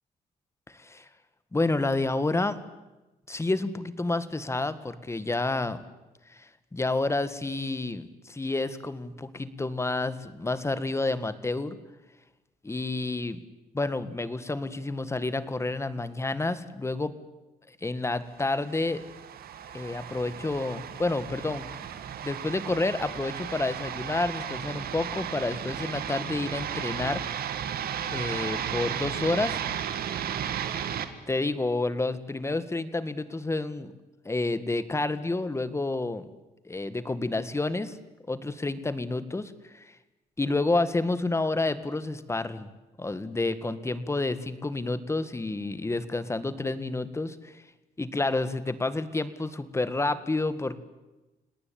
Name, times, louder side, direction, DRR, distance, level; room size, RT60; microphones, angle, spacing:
voice 1, 0.7-1.1 1.5-2.6 3.3-5.8 6.3-11.8 12.6-13.4 13.7-17.1 17.7-19.0 19.7-21.7 22.2-27.5 28.0-29.6 31.3-33.9 34.3-36.3 36.7-38.0 38.3-39.9 40.4-42.7 43.0-47.6 48.0-50.8, left 2 dB, 15° left, 13 dB, 1.8 m, -29 dB
sound 1, 18.5-31.1, right 9 dB, 75° right, 2.2 m, -34 dB
30.0 x 18.5 x 8.8 m, 1.1 s
cardioid pair, 110°, 16 cm